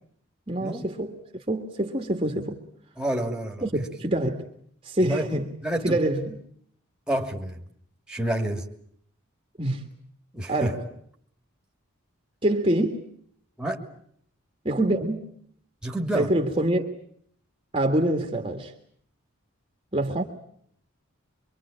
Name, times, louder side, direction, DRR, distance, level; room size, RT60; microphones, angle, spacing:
voice 1, 0.5-1.2 1.5-2.6 3.6-4.4 4.8-5.5 5.8-6.4 9.6-9.8 10.5-10.8 12.4-13.0 14.7-15.3 16.1-16.8 17.7-18.7 19.9-20.2, right 1 dB, 25° right, 1.9 m, -25 dB
voice 2, 3.0-3.7 5.0-5.3 5.6-6.0 7.1-7.6 8.1-8.7 10.3-10.8 13.6-13.8 15.8-16.3, right 1 dB, 5° right, 2.6 m, -28 dB
25.5 x 24.5 x 8.7 m
head